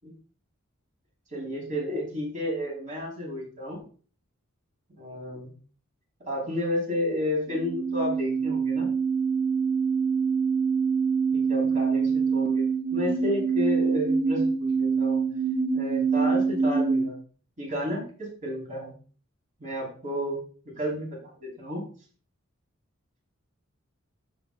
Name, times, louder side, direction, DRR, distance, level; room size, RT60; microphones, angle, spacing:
voice 1, 1.3-3.8 5.0-5.5 6.2-8.9 11.3-12.6 12.9-15.2 15.7-17.2 17.6-18.9 19.6-20.4 20.8-21.8, left 1 dB, 40° right, -2 dB, 4.7 m, -31 dB
sound 1, 7.5-17.1, right 5 dB, 20° right, 1.0 m, -25 dB
12.0 x 6.8 x 2.6 m, 0.40 s
head